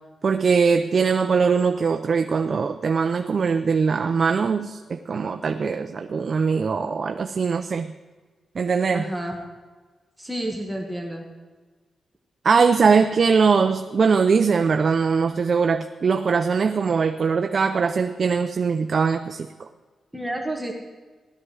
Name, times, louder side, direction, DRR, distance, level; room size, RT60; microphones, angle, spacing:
voice 1, 0.2-7.9 8.6-9.1 12.4-19.5, right 5 dB, 45° right, 6 dB, 0.5 m, -21 dB
voice 2, 8.9-9.4 10.2-11.3 20.1-20.7, right 1 dB, 5° right, 0 dB, 1.5 m, -30 dB
16.5 x 12.0 x 4.8 m, 1.4 s
wide cardioid pair, 140°, 0 cm